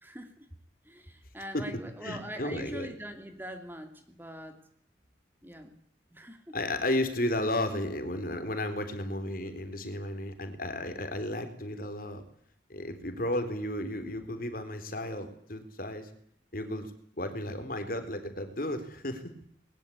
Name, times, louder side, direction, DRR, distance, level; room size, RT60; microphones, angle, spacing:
voice 1, 0.0-0.5 0.8-4.6 5.4-5.8 6.1-6.6, equal, 10° right, 6 dB, 2.8 m, -43 dB
voice 2, 1.5-2.9 6.5-12.3 12.7-16.1 16.5-19.3, left 1 dB, 50° left, 8 dB, 3.7 m, -33 dB
21.0 x 21.0 x 8.5 m, 0.63 s
head